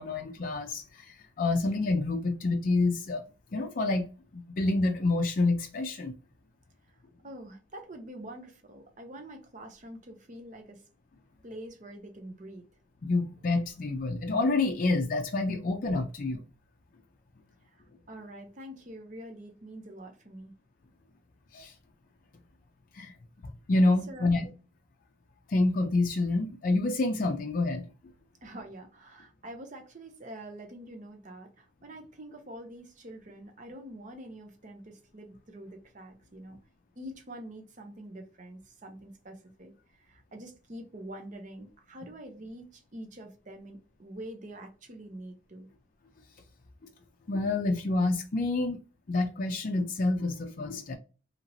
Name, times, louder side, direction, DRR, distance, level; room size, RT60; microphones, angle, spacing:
voice 1, 0.0-3.2 3.5-4.1 4.3-6.1 13.0-16.4 21.5-21.7 22.9-23.1 23.4-24.4 25.5-27.9 47.3-48.8 49.1-51.0, left 2 dB, 45° left, 0.4 m, -28 dB
voice 2, 6.9-10.8 11.4-12.7 17.6-20.5 24.1-24.4 28.4-36.6 37.0-45.7, right 1 dB, 40° right, 0.6 m, -46 dB
2.8 x 2.8 x 2.6 m
head